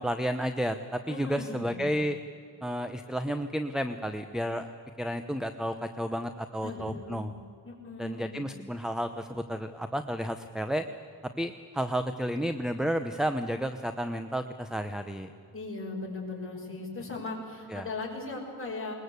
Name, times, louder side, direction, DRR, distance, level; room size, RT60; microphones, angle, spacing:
voice 1, 0.0-2.2 2.6-4.7 5.0-7.3 8.0-10.8 11.4-15.3 17.7-17.9, equal, ahead, 8 dB, 0.8 m, -31 dB
voice 2, 1.1-1.9 6.6-7.3 7.6-8.5 15.5-18.9, left 3 dB, 30° left, -1 dB, 5.9 m, -38 dB
21.0 x 21.0 x 8.2 m, 2.4 s
wide cardioid pair, 110°, 39 cm